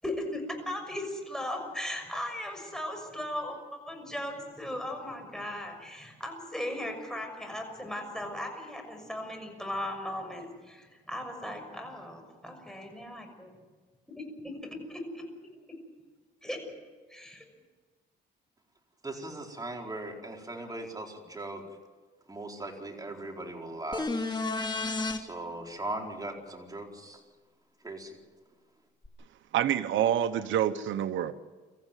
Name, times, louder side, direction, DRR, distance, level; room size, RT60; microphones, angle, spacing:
voice 1, 0.0-13.3 14.1-15.0 16.4-16.6 17.1-17.4, left 1 dB, 5° left, 6.4 m, -37 dB
voice 2, 19.0-21.6 22.3-24.1 25.1-27.2 27.8-28.2, right 2 dB, 20° right, 4.6 m, -39 dB
sound 1, 23.9-25.2 29.0-29.1, left 3 dB, 20° left, 2.6 m, -31 dB
voice 3, 29.5-31.3, right 10 dB, 75° right, 1.0 m, -27 dB
25.0 x 14.5 x 9.2 m
cardioid pair, 90°, 20 cm